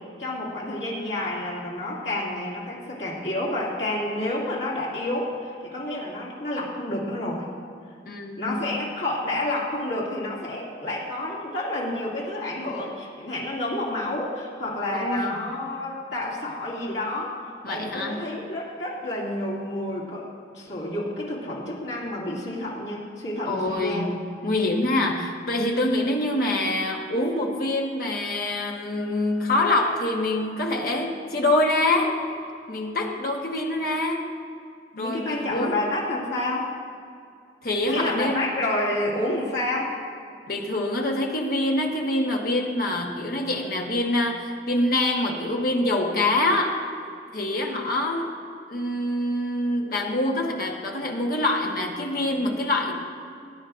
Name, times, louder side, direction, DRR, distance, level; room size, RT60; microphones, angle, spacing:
voice 1, 0.2-7.5 8.4-17.3 17.7-20.2 20.5-24.1 34.9-36.7 37.8-39.9, left 1 dB, 75° left, -6 dB, 2.5 m, -29 dB
voice 2, 8.0-8.6 15.0-15.4 17.6-18.2 23.5-24.1 24.4-32.2 32.7-34.3 35.0-35.8 37.6-38.5 40.5-46.8 47.3-48.3 48.7-52.9, left 1 dB, 55° left, 0 dB, 1.3 m, -25 dB
19.0 x 9.8 x 2.6 m, 2.4 s
head